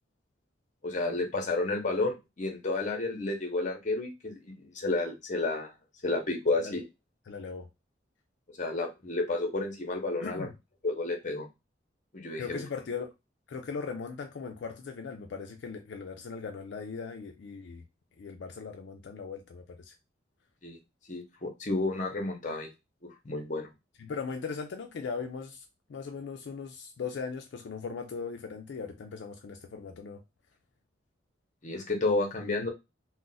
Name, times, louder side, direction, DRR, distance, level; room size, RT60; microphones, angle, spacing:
voice 1, 0.8-5.7 6.0-6.8 8.6-10.5 10.8-11.5 12.1-12.6 20.6-20.8 21.1-22.7 23.2-23.7 31.6-32.7, left 2 dB, 40° left, 0.7 m, -31 dB
voice 2, 7.3-7.7 10.2-10.5 12.4-13.1 13.5-17.8 18.2-19.9 24.0-30.2, left 5 dB, 75° left, 0.4 m, -39 dB
2.4 x 2.1 x 3.8 m
head